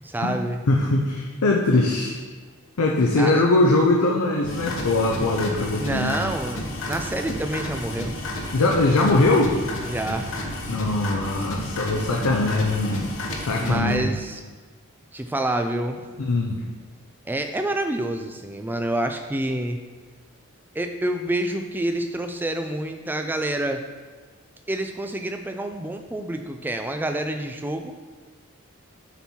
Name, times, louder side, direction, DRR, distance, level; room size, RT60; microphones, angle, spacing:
voice 1, 0.0-0.6 3.2-3.4 5.8-8.1 9.8-10.4 13.6-14.4 15.1-16.0 17.3-19.8 20.7-23.8 24.7-27.9, right 1 dB, 10° right, 6 dB, 0.3 m, -27 dB
voice 2, 0.7-2.2 2.8-6.1 8.5-9.6 10.7-13.1 13.5-14.1 16.2-16.6, left 2 dB, 85° left, 0 dB, 0.6 m, -21 dB
sound 1, 4.4-14.0, left 1 dB, 60° left, 1.0 m, -32 dB
6.9 x 4.5 x 4.3 m, 1.4 s
head